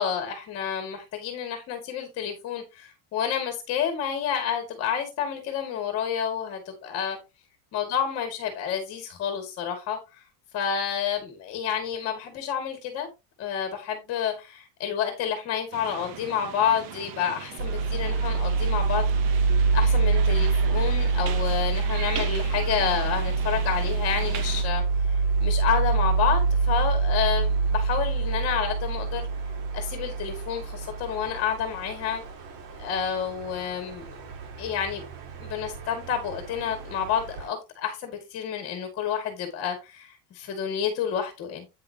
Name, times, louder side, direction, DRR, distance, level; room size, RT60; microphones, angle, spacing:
voice 1, 0.0-7.2 7.7-10.2 10.5-13.1 13.4-19.0 19.7-29.3 29.7-32.2 32.8-34.2 34.6-35.0 35.4-41.7, left 8 dB, 30° left, 2.2 m, -29 dB
sound 1, 15.7-24.6, right 8 dB, 45° right, 1.3 m, -39 dB
sound 2, 17.6-37.5, right 4 dB, 80° right, 4.0 m, -26 dB
9.2 x 7.6 x 2.9 m
cardioid pair, 180°, 46 cm